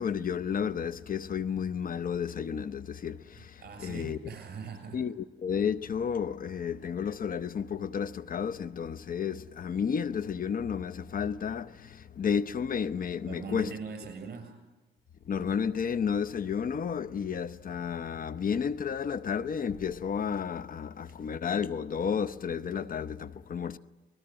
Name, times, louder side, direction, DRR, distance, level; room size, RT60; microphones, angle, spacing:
voice 1, 0.0-4.2 4.9-13.7 15.2-23.8, left 7 dB, 45° left, 0.8 m, -32 dB
voice 2, 3.3-5.0 13.2-14.6, right 5 dB, 50° right, 7.1 m, -41 dB
25.0 x 20.0 x 8.9 m
cardioid pair, 90°, 20 cm